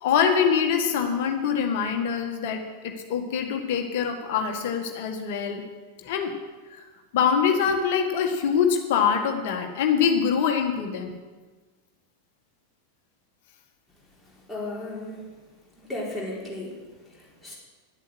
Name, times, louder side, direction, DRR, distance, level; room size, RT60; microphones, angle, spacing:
voice 1, 0.0-5.6 6.0-6.3 6.7-6.8 7.1-11.1, left 7 dB, 50° left, 4 dB, 1.7 m, -24 dB
voice 2, 14.5-15.2 15.8-16.8 17.1-17.5, left 1 dB, 5° left, -6 dB, 4.4 m, -35 dB
11.5 x 8.2 x 8.0 m, 1.3 s
figure-of-eight pair, 90°, 0 cm